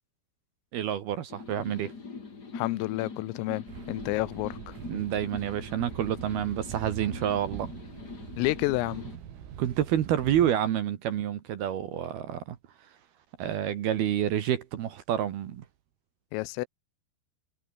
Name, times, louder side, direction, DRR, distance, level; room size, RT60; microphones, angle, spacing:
voice 1, 0.7-1.9 4.9-7.7 9.6-12.6 13.4-15.6, right 10 dB, 65° right, 3.0 m, -28 dB
sound 1, 1.3-9.2, left 4 dB, 30° left, 2.1 m, -43 dB
voice 2, 2.5-4.8 8.4-9.0 16.3-16.7, left 20 dB, 90° left, 3.5 m, -30 dB
sound 2, 3.7-10.5, right 9 dB, 85° right, 6.1 m, -42 dB
omnidirectional pair, 5.9 m